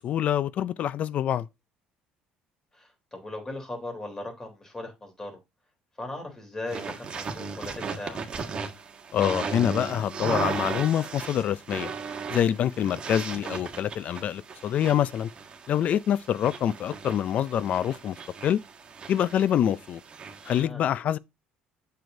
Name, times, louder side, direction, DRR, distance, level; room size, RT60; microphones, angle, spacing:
voice 1, 0.0-1.5 9.1-11.9 12.3-15.3 15.7-18.2 18.4-18.6 19.1-20.0 20.5-21.2, left 10 dB, 50° left, 0.5 m, -26 dB
voice 2, 2.7-5.3 6.0-8.2 20.4-20.8, left 2 dB, 15° left, 3.4 m, -38 dB
sound 1, 6.7-20.6, right 5 dB, 35° right, 1.6 m, -36 dB
7.8 x 6.9 x 2.7 m
cardioid pair, 120°, 3 cm